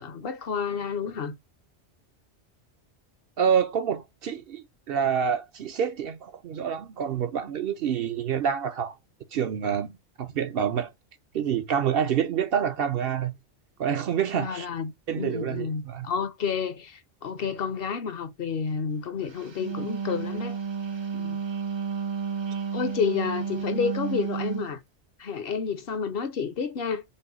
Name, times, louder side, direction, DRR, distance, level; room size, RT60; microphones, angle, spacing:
voice 1, 0.0-1.3 14.3-20.6 21.1-21.4 22.7-24.8 25.2-27.0, left 6 dB, 60° left, 0.8 m, -30 dB
voice 2, 3.4-9.0 9.3-10.9 11.3-13.4 13.8-14.7 15.1-16.1, right 8 dB, 60° right, 0.8 m, -27 dB
Wind instrument woodwind instrument, 19.4-24.7, right 6 dB, 40° right, 0.4 m, -31 dB
5.4 x 2.1 x 3.8 m
omnidirectional pair, 1.2 m